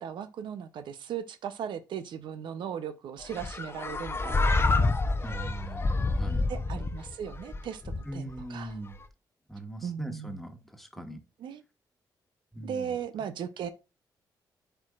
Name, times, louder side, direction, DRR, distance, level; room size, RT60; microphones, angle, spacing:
voice 1, 0.0-4.6 6.5-8.7 9.8-10.4 11.4-11.6 12.6-13.7, right 8 dB, 80° right, 0.6 m, -37 dB
sound 1, 3.3-8.4, left 3 dB, 30° left, 0.7 m, -28 dB
voice 2, 5.2-6.4 8.0-9.0 9.5-11.2 12.5-13.0, right 1 dB, ahead, 1.3 m, -40 dB
10.5 x 4.5 x 2.4 m
cardioid pair, 75°, 8 cm